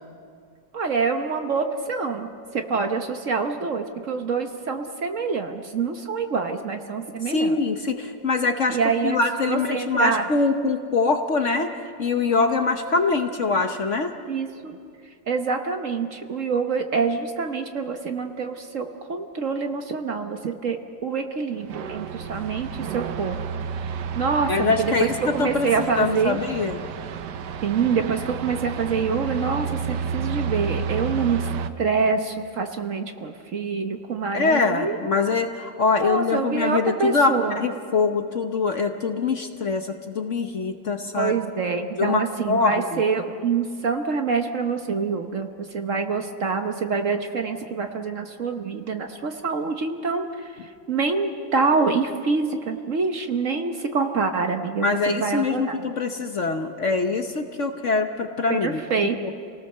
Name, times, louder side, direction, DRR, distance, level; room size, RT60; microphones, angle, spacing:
voice 1, 0.7-7.6 8.7-9.2 9.5-10.3 14.3-14.8 15.3-23.4 24.1-26.4 27.6-31.5 31.8-35.0 36.0-37.6 41.2-55.9 58.5-59.2, right 5 dB, 50° right, 5 dB, 1.2 m, -26 dB
voice 2, 7.3-8.8 9.0-11.7 12.0-14.1 24.5-26.8 34.3-41.3 42.0-43.0 54.8-58.8, left 4 dB, 50° left, 6 dB, 1.1 m, -23 dB
sound 1, 21.6-31.7, right 6 dB, 70° right, 1.4 m, -31 dB
28.5 x 18.5 x 6.7 m, 2.3 s
omnidirectional pair, 2.0 m